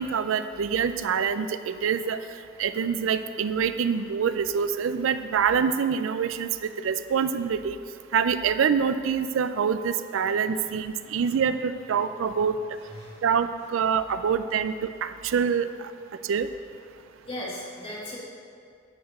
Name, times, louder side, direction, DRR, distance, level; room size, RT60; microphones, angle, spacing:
voice 1, 0.0-2.2 2.6-6.5 6.8-7.8 8.1-12.6 13.2-15.7 16.3-16.5, right 7 dB, 70° right, 11 dB, 0.4 m, -25 dB
voice 2, 10.3-10.7 11.0-11.2 12.7-13.3 17.2-18.2, left 1 dB, 30° left, -5 dB, 2.0 m, -39 dB
9.9 x 5.0 x 6.4 m, 2.3 s
head